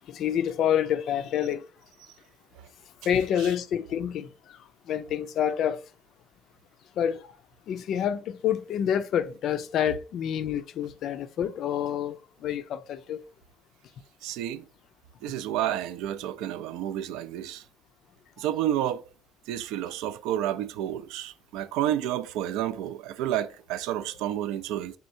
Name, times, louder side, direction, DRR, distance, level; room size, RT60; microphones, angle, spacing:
voice 1, 0.1-1.6 3.1-4.3 4.9-5.8 7.0-7.3 7.7-13.2, left 9 dB, 50° left, 0.3 m, -27 dB
voice 2, 14.2-14.7 15.2-17.6 18.4-19.0 19.5-24.9, right 11 dB, 75° right, 0.4 m, -30 dB
4.3 x 3.6 x 2.6 m
cardioid pair, 160°, 0 cm